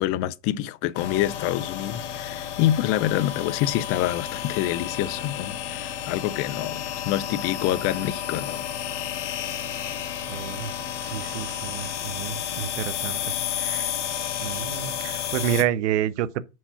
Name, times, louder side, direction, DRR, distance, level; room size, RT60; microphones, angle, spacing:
voice 1, 0.0-8.6, left 13 dB, 40° left, 0.5 m, -26 dB
sound 1, 0.9-15.6, left 9 dB, 85° left, 1.5 m, -31 dB
voice 2, 10.3-10.7 11.0-13.9 14.4-16.4, right 10 dB, 80° right, 0.7 m, -29 dB
5.6 x 4.6 x 5.7 m
supercardioid pair, 135°, 35 cm